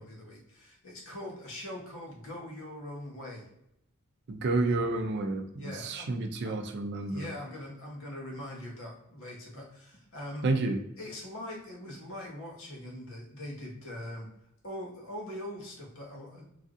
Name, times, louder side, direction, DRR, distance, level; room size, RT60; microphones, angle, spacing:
voice 1, 0.0-3.5 5.6-6.2 6.4-6.6 7.1-10.5 11.0-14.3 14.6-16.5, left 1 dB, 65° left, -2 dB, 1.0 m, -42 dB
voice 2, 4.3-7.3 10.4-10.8, right 2 dB, 55° right, 5 dB, 0.4 m, -30 dB
3.1 x 2.6 x 2.5 m, 0.79 s
head